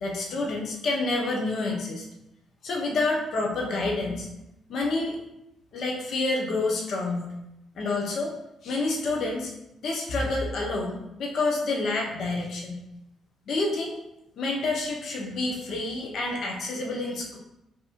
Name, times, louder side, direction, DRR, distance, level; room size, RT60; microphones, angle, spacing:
voice 1, 0.0-2.0 2.6-4.3 4.7-5.2 5.7-7.3 7.8-8.3 8.6-9.5 9.8-12.8 13.5-13.9 14.4-17.4, left 2 dB, 65° left, -1 dB, 0.6 m, -28 dB
5.2 x 2.6 x 2.4 m, 0.87 s
cardioid pair, 90°, 0 cm